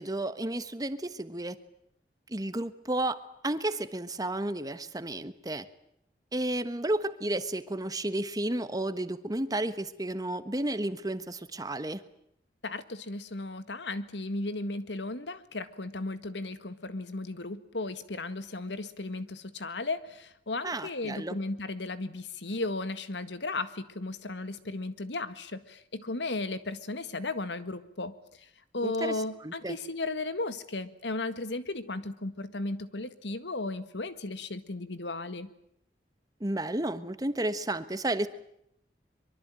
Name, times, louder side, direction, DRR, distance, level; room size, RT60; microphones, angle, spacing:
voice 1, 0.0-1.5 2.3-3.2 3.4-5.6 6.3-12.0 20.6-21.4 28.8-29.2 29.4-29.8 36.4-38.3, right 1 dB, 20° right, 12 dB, 1.4 m, -32 dB
voice 2, 12.6-28.1 28.7-35.5, left 2 dB, 85° left, 12 dB, 1.8 m, -35 dB
24.0 x 23.5 x 9.1 m, 0.75 s
head